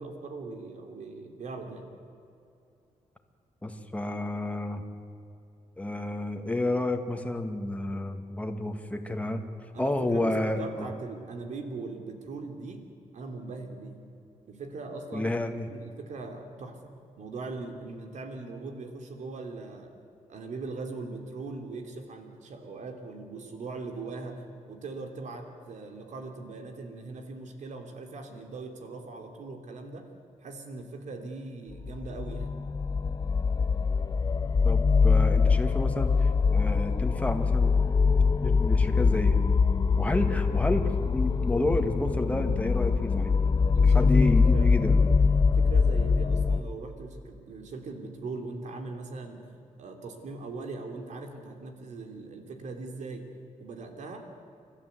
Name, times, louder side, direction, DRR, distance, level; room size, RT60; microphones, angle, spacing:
voice 1, 0.0-1.8 9.7-12.8 13.1-14.0 14.5-15.4 15.7-19.9 20.3-30.1 30.4-32.5 43.7-44.7 45.6-49.4 49.8-53.3 53.6-54.3, right 3 dB, 70° right, 4 dB, 3.0 m, -40 dB
voice 2, 3.6-4.8 5.8-9.4 9.8-10.9 15.1-15.7 34.6-37.8 38.4-39.4 40.0-43.4 43.7-45.2, left 1 dB, 10° left, 5 dB, 2.2 m, -30 dB
sound 1, 31.8-46.6, left 5 dB, 30° left, 0.6 m, -23 dB
29.5 x 12.5 x 8.2 m, 2.7 s
cardioid pair, 85°, 13 cm